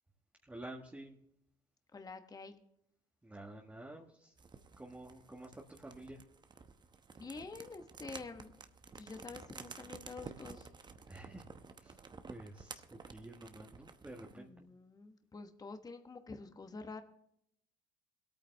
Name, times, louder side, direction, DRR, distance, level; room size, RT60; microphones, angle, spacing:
voice 1, 0.5-1.1 3.2-4.3 4.8-6.2 11.1-11.5 11.8-11.9 12.3-14.5, right 1 dB, 10° right, -1 dB, 1.7 m, -50 dB
voice 2, 1.9-2.6 7.2-8.5 9.0-10.7 14.3-17.0, left 4 dB, 25° left, 6 dB, 1.2 m, -48 dB
sound 1, 4.4-14.4, right 4 dB, 25° right, 1.0 m, -52 dB
22.0 x 8.9 x 3.4 m, 0.76 s
supercardioid pair, 75°, 16 cm